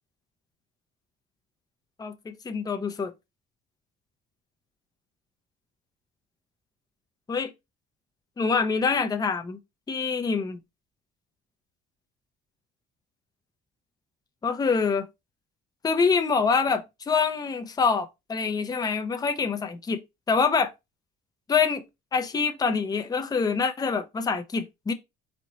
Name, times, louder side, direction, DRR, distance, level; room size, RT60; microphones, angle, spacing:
voice 1, 2.0-3.1 7.3-7.5 8.4-9.6 9.9-10.6 14.4-15.1 15.8-20.0 20.3-20.7 21.5-21.8 22.1-24.9, left 5 dB, 20° left, 0.5 m, -25 dB
4.2 x 2.7 x 3.0 m
cardioid pair, 115°, 21 cm